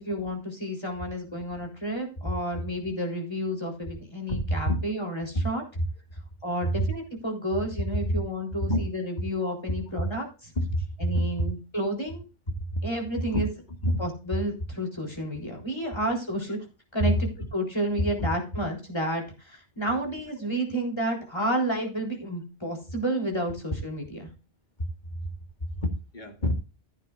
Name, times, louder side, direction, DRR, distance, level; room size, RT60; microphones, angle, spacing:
voice 1, 0.0-5.6 6.4-10.5 11.0-12.2 12.8-13.5 14.0-16.6 16.9-24.2, right 1 dB, 25° left, 0 dB, 3.9 m, -31 dB
voice 2, 4.3-4.8 5.3-5.4 5.8-5.9 6.6-6.9 8.1-8.2 8.7-8.8 10.6-11.4 12.6-12.9 13.3-13.5 13.8-14.0 14.3-14.4 17.0-17.1 18.2-18.3 24.8-25.3 25.6-26.5, equal, 40° left, 4 dB, 2.2 m, -27 dB
15.0 x 9.0 x 2.5 m, 0.32 s
omnidirectional pair, 1.2 m